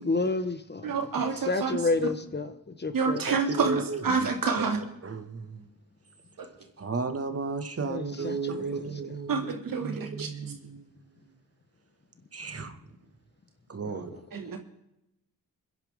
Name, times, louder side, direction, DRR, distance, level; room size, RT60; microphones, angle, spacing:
voice 1, 0.0-0.9 1.5-3.2 7.9-8.5 13.8-14.0, left 3 dB, 30° left, 1.2 m, -30 dB
voice 2, 0.8-1.7 2.9-4.8 6.4-6.5 9.3-10.5 14.3-14.6, right 5 dB, 70° right, 2.6 m, -28 dB
voice 3, 3.3-4.3 4.6-4.7 5.0-5.7 6.8-9.5 9.8-11.4 12.3-13.0 13.7-14.3, right 4 dB, 40° right, 2.1 m, -34 dB
28.0 x 10.5 x 3.8 m
cardioid pair, 60°, 35 cm